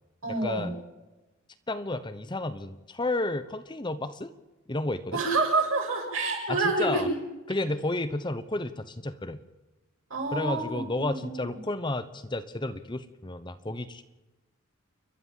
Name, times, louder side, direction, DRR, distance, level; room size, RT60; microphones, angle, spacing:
voice 1, 0.2-0.7 5.1-7.1 10.1-11.4, right 3 dB, 75° right, 0 dB, 7.8 m, -28 dB
voice 2, 1.7-4.3 4.7-5.2 6.5-7.1 7.5-9.4 10.3-14.0, left 2 dB, 20° left, 11 dB, 0.9 m, -31 dB
29.5 x 12.0 x 7.5 m, 1.1 s
head